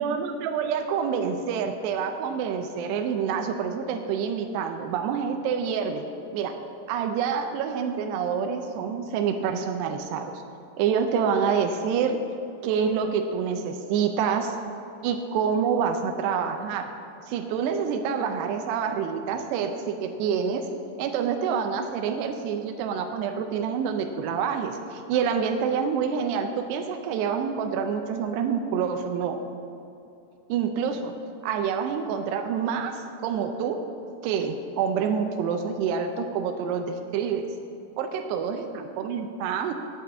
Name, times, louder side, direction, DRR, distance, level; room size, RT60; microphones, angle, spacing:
voice 1, 0.0-6.1 6.3-6.5 6.9-10.4 10.8-12.2 12.6-14.6 15.0-16.9 17.3-20.7 21.0-29.4 30.5-31.1 31.4-33.8 34.2-37.5 38.0-39.7, right 6 dB, 80° right, 5 dB, 2.5 m, -27 dB
9.2 x 7.1 x 7.5 m, 2.7 s
omnidirectional pair, 5.4 m